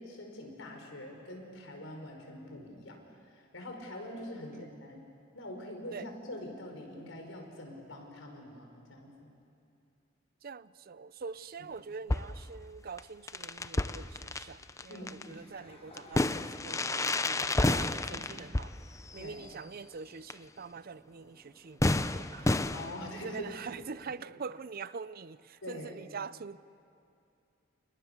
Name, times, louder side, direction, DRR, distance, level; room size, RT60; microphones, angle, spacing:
voice 1, 0.0-5.1 5.3-9.3 14.9-15.5 18.1-18.2 19.2-19.5 22.7-23.5 23.7-23.9 25.6-26.0, left 1 dB, 75° left, 5.5 m, -44 dB
voice 2, 4.3-4.7 5.9-6.1 10.4-18.7 19.1-22.6 23.0-26.6, right 5 dB, 50° right, 0.5 m, -44 dB
sound 1, 12.1-12.6 13.0-13.1 13.3-15.2 16.0-19.5 20.3-20.4 20.8-20.9 21.8-23.4, left 2 dB, 15° left, 0.6 m, -31 dB
sound 2, 14.4-17.2 17.6-18.3, left 2 dB, 30° left, 4.7 m, -58 dB
29.5 x 29.5 x 6.9 m
head